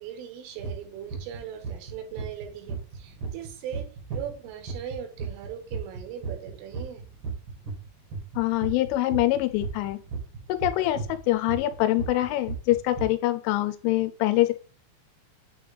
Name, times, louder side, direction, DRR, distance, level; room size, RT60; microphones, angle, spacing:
voice 1, 0.0-7.0, right 9 dB, 90° right, 5 dB, 3.8 m, -39 dB
sound 1, 0.6-0.7 1.1-1.4 1.6-7.9 8.1-13.0, right 5 dB, 70° right, 1.1 m, -34 dB
voice 2, 8.4-10.0 10.5-14.5, left 16 dB, 90° left, 11 dB, 3.1 m, -24 dB
9.2 x 3.3 x 3.3 m, 0.40 s
omnidirectional pair, 5.5 m